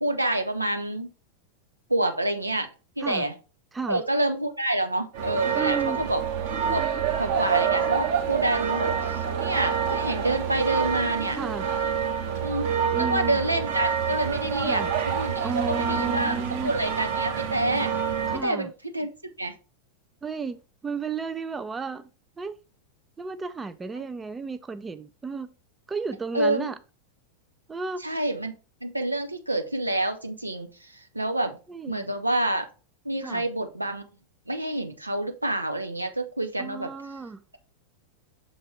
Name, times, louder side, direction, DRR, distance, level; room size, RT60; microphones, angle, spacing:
voice 1, 0.0-1.1 1.9-2.7 3.0-3.3 3.9-6.2 6.7-6.9 7.2-11.4 12.4-16.3 16.6-17.9 18.4-19.1 19.4-19.5 24.0-24.1 26.3-26.7 28.0-28.5 28.8-31.5 31.9-32.6 33.0-34.1 34.5-36.9, right 1 dB, 85° right, 0.9 m, -28 dB
sound 1, 5.1-18.4, right 7 dB, 50° right, 1.5 m, -27 dB
voice 2, 5.5-6.0 11.4-11.7 12.9-13.4 14.6-14.9 15.4-16.7 18.3-18.7 20.2-22.1 22.4-22.6 23.2-25.5 25.9-26.8 27.7-28.1 31.7-32.1 33.2-33.5 36.6-37.4, right 4 dB, 15° right, 0.5 m, -33 dB
6.6 x 4.0 x 4.8 m
figure-of-eight pair, 90°, 0 cm